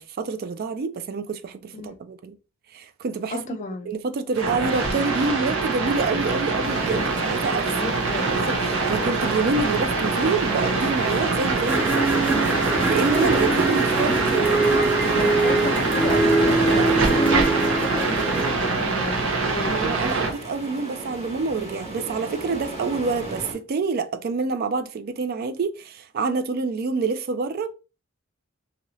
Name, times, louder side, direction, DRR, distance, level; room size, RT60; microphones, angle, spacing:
voice 1, 0.0-2.3 2.7-3.6 3.9-7.7 8.3-12.0 12.9-14.6 16.7-17.2 19.7-27.7, right 4 dB, 50° right, 0.3 m, -27 dB
voice 2, 3.3-3.9 7.7-8.4 13.1-14.2 15.1-19.2 19.5-20.0, left 3 dB, 35° left, 0.4 m, -33 dB
sound 1, 4.3-20.3, right 3 dB, 70° right, 0.9 m, -24 dB
sound 2, 6.6-23.5, right 2 dB, 30° right, 1.3 m, -33 dB
sound 3, 11.7-18.5, right 2 dB, 10° right, 0.7 m, -23 dB
2.8 x 2.6 x 3.0 m
head